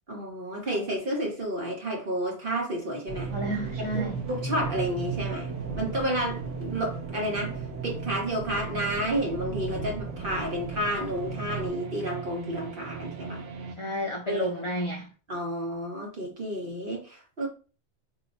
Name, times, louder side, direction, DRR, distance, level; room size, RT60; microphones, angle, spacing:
voice 1, 0.1-3.3 3.9-13.4 14.3-14.6 15.3-17.5, right 1 dB, 50° right, 1.2 m, -31 dB
sound 1, 3.1-11.7, right 5 dB, 15° right, 0.8 m, -37 dB
sound 2, 3.2-13.7, right 6 dB, 85° right, 0.9 m, -38 dB
voice 2, 3.3-4.2 13.8-15.1, equal, 45° left, 0.4 m, -31 dB
2.8 x 2.1 x 4.0 m
omnidirectional pair, 1.2 m